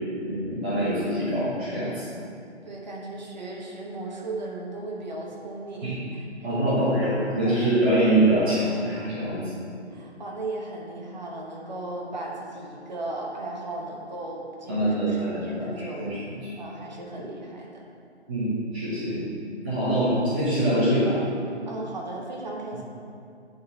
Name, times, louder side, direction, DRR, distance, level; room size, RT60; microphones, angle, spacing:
voice 1, 0.2-2.0 5.8-6.0 6.4-9.4 14.7-15.7 16.0-16.5 18.3-19.2 19.6-21.2, right 1 dB, 10° right, -13 dB, 0.7 m, -24 dB
voice 2, 2.6-6.8 7.4-7.6 9.9-16.2 16.6-17.8 21.7-22.8, right 2 dB, 40° right, -2 dB, 1.1 m, -36 dB
9.3 x 4.3 x 4.1 m, 2.4 s
figure-of-eight pair, 150°, 35 cm